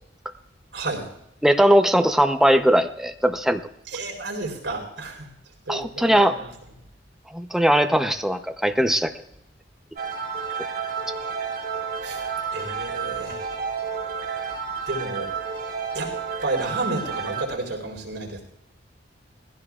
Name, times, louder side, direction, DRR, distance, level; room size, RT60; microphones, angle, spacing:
voice 1, 0.7-1.1 3.9-5.3 5.7-6.5 12.0-12.2 12.5-13.4 14.9-15.3 15.9-16.2 16.4-18.4, right 2 dB, 80° right, 0 dB, 4.2 m, -31 dB
voice 2, 1.4-3.6 5.7-6.3 7.3-9.1, equal, 5° right, 7 dB, 0.7 m, -19 dB
sound 1, 10.0-17.4, right 6 dB, 60° right, 3.2 m, -31 dB
20.5 x 16.0 x 2.4 m, 0.78 s
head